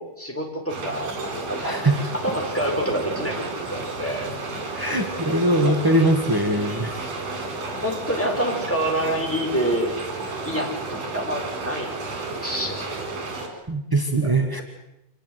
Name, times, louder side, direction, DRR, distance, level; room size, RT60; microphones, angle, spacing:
voice 1, 0.0-1.7 2.2-4.3 5.6-5.7 7.7-9.9 10.4-13.0 14.2-14.3, right 1 dB, 5° left, 1 dB, 4.8 m, -27 dB
sound 1, 0.7-13.5, right 3 dB, 90° right, 6.4 m, -32 dB
voice 2, 1.6-2.1 4.7-7.1 13.7-14.6, right 1 dB, 10° right, 3 dB, 0.9 m, -21 dB
26.0 x 20.5 x 7.9 m, 0.88 s
omnidirectional pair, 3.6 m